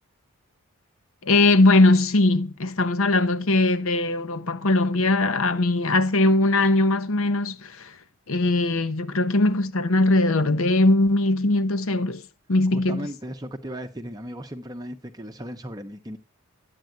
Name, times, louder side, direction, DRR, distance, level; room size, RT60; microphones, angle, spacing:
voice 1, 1.2-7.9 8.3-12.2 12.5-13.1, left 2 dB, 65° left, 1.0 m, -20 dB
voice 2, 12.7-16.2, equal, 15° right, 0.8 m, -36 dB
13.0 x 8.9 x 9.3 m
head